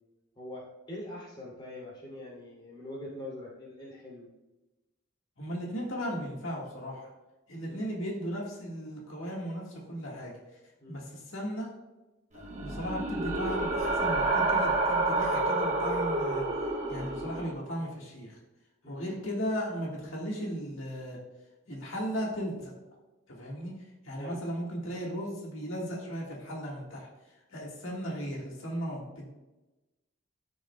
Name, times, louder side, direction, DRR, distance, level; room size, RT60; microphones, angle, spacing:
voice 1, 0.4-4.3 7.7-7.8 10.8-11.0 18.8-19.1 24.2-24.4, left 1 dB, 25° left, -5 dB, 2.6 m, -43 dB
voice 2, 5.4-7.1 7.5-10.3 10.9-11.7 12.3-16.4 16.9-18.4 18.9-21.2 21.7-22.7 23.3-23.7 24.0-27.1 27.5-29.3, equal, 75° left, -3 dB, 1.6 m, -36 dB
sound 1, 12.4-17.5, right 2 dB, 35° right, 1.1 m, -29 dB
13.5 x 6.3 x 2.2 m, 1.1 s
head